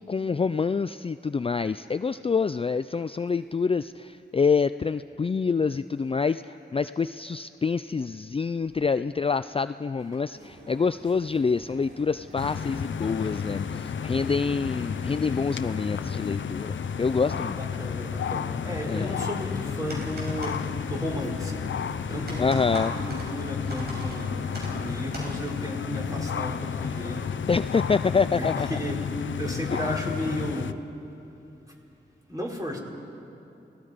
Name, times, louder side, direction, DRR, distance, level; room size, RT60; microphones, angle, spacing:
voice 1, 0.0-17.6 18.9-19.2 22.4-23.0 27.5-28.7, left 5 dB, 30° left, 12 dB, 0.4 m, -26 dB
sound 1, 10.3-28.0, right 1 dB, 85° right, 3.6 m, -48 dB
sound 2, 12.4-30.7, left 7 dB, 80° left, 0.7 m, -32 dB
voice 2, 14.0-14.4 17.2-22.5 22.9-27.3 28.4-30.7 32.3-32.8, equal, 20° right, -2 dB, 4.6 m, -34 dB
sound 3, 19.4-25.3, right 1 dB, 60° right, 6.7 m, -41 dB
29.0 x 18.5 x 5.1 m, 2.8 s
cardioid pair, 55°, 19 cm